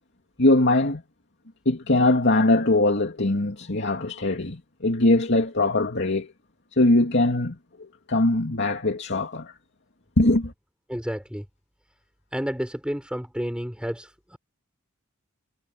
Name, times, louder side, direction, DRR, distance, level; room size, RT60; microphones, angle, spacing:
voice 1, 0.4-1.0 1.7-6.3 6.7-7.6 8.1-9.5 10.2-10.5, left 2 dB, 55° left, 2.6 m, -21 dB
voice 2, 10.9-11.4 12.3-14.4, equal, 5° right, 6.3 m, -31 dB
head